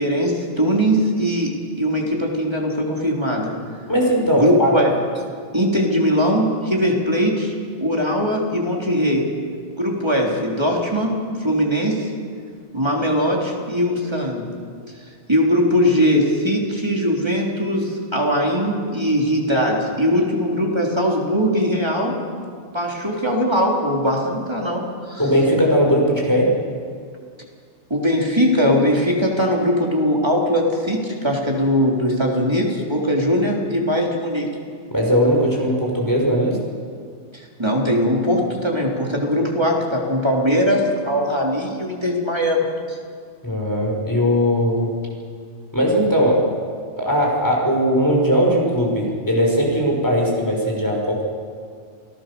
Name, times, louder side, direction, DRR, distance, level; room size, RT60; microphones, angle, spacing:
voice 1, 0.0-3.6 4.4-4.9 5.5-9.3 9.8-12.1 12.7-14.5 15.3-22.2 22.7-25.2 27.9-34.5 37.3-43.0, equal, 20° right, -1 dB, 3.7 m, -20 dB
voice 2, 3.9-4.7 25.2-26.5 34.9-36.6 43.4-44.9 45.7-46.4 47.0-51.2, equal, 15° left, -2 dB, 5.8 m, -19 dB
29.0 x 17.5 x 7.0 m, 2.1 s
omnidirectional pair, 1.2 m